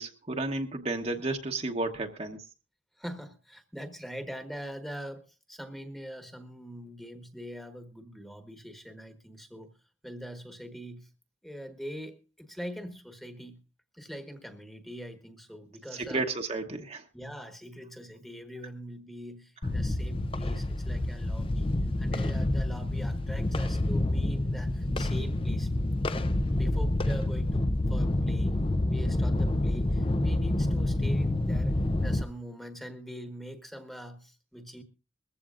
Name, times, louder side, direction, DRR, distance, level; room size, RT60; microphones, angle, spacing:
voice 1, 0.0-2.4 15.9-17.0, right 2 dB, 35° right, 4 dB, 1.1 m, -32 dB
voice 2, 3.0-9.7 10.0-11.1 11.4-13.6 13.9-16.3 17.1-25.7 26.4-28.6 28.9-34.8, equal, ahead, 6 dB, 1.3 m, -43 dB
sound 1, 19.6-32.2, left 1 dB, 30° left, 0.6 m, -28 dB
21.0 x 15.0 x 2.5 m, 0.32 s
head